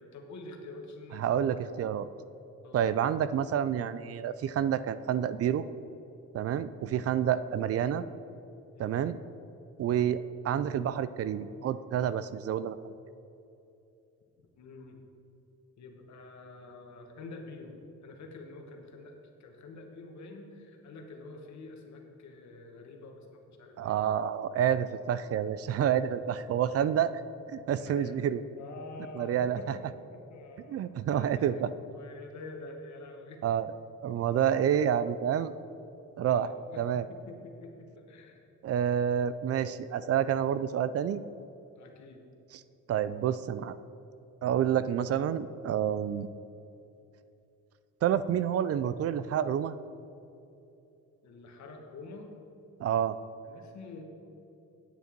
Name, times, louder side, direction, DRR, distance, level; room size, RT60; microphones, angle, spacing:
voice 1, 0.0-1.6 2.6-2.8 8.7-8.9 14.4-15.0 15.8-17.8 18.0-19.1 19.4-23.9 27.7-28.3 28.6-31.6 31.9-33.4 34.1-34.2 36.2-36.8 37.1-38.4 41.8-42.2 51.2-52.3 53.4-54.0, left 3 dB, 65° left, 3 dB, 1.5 m, -47 dB
voice 2, 1.2-2.1 2.7-5.6 6.3-8.1 8.8-9.2 9.8-12.8 23.8-27.2 27.5-28.4 29.2-29.6 30.7-31.7 33.4-33.7 34.0-35.5 36.2-36.5 36.8-37.0 38.6-41.2 42.9-43.8 44.4-46.3 48.0-49.7 52.8-53.2, right 9 dB, 50° right, 14 dB, 0.4 m, -28 dB
9.1 x 8.1 x 4.5 m, 2.8 s
cardioid pair, 90°, 30 cm